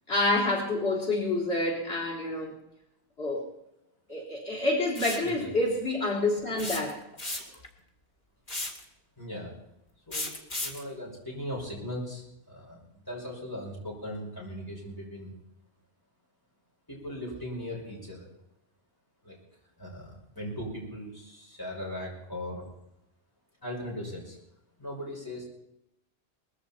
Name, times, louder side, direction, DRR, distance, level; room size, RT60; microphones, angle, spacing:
voice 1, 0.1-2.5 3.2-3.5 4.1-7.0, left 2 dB, 85° left, -1 dB, 3.9 m, -28 dB
sound 1, 5.0-5.3 6.6-7.7 8.5-8.8 10.1-10.8, left 2 dB, 45° left, 2.2 m, -34 dB
voice 2, 9.2-9.5 10.1-10.3 10.6-15.3 16.9-18.3 19.2-19.4 19.8-22.6 23.6-24.4 24.8-25.4, equal, 20° left, -3 dB, 5.8 m, -38 dB
20.5 x 15.0 x 4.4 m, 0.84 s
omnidirectional pair, 1.1 m